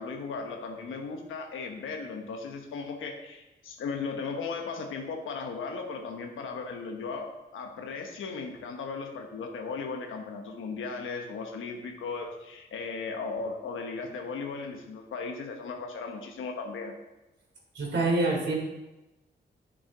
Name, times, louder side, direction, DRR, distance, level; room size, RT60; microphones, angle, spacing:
voice 1, 0.0-16.9, left 4 dB, 90° left, 2 dB, 1.1 m, -36 dB
voice 2, 17.7-18.5, right 2 dB, 65° right, -1 dB, 3.3 m, -26 dB
8.8 x 7.9 x 3.8 m, 1.0 s
cardioid pair, 65°, 20 cm